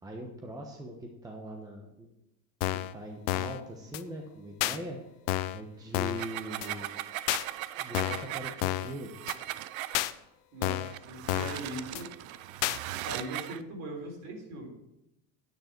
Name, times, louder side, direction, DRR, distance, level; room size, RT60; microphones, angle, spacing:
voice 1, 0.0-2.1 2.7-5.0 5.5-7.0 7.8-9.1, right 1 dB, 10° right, 1 dB, 1.1 m, -41 dB
sound 1, 2.6-2.9 3.3-3.6 3.9-4.0 4.6-4.8 5.3-5.6 5.9-6.3 6.6-6.7 7.3-7.4 7.9-8.3 8.6-8.9 9.3-9.4 9.9-10.1 10.6-10.9 11.3-11.6 11.9-12.0 12.6-12.8, left 16 dB, 70° left, 0.7 m, -30 dB
sound 2, 6.0-10.0 10.8-13.6, right 15 dB, 90° right, 0.6 m, -39 dB
voice 2, 10.5-12.1 13.0-14.7, right 1 dB, 50° right, 1 dB, 3.7 m, -40 dB
10.0 x 9.3 x 4.5 m, 0.87 s
cardioid pair, 145°, 40 cm